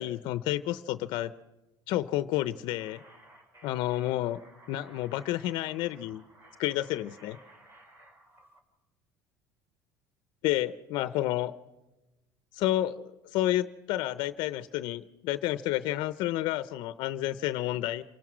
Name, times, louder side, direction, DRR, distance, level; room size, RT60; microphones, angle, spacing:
voice 1, 0.0-1.3 1.9-3.0 3.6-4.4 4.7-6.2 6.6-7.4 10.4-11.5 12.5-18.0, left 14 dB, 70° left, 14 dB, 0.7 m, -30 dB
sound 1, 2.7-8.6, right 1 dB, 30° right, 4.6 m, -56 dB
27.5 x 18.5 x 6.3 m, 1.0 s
cardioid pair, 125°, 8 cm